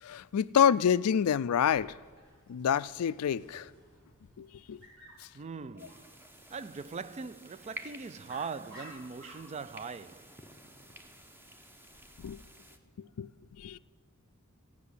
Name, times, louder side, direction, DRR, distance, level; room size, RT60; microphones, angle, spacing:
voice 1, 0.0-1.9 2.5-3.7 4.4-4.8 5.2-5.3 12.2-12.4 13.0-13.3 13.6-13.8, left 8 dB, 90° left, 0.4 m, -28 dB
Dog, 1.6-12.2, equal, 60° right, 5.1 m, -57 dB
voice 2, 5.3-6.1 6.5-10.4, right 5 dB, 30° right, 0.3 m, -41 dB
sound 1, 5.8-12.8, right 1 dB, 10° right, 0.8 m, -52 dB
15.5 x 6.0 x 9.7 m
head